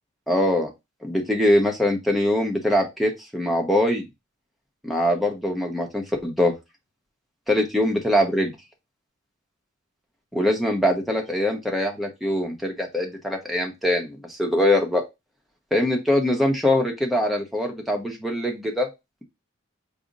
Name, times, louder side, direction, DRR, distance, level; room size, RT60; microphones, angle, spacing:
voice 1, 0.3-0.7 1.0-4.1 4.8-6.5 7.5-8.5 10.3-15.0 15.7-18.9, left 1 dB, ahead, 1 dB, 0.8 m, -23 dB
4.9 x 2.1 x 3.9 m, 0.22 s
head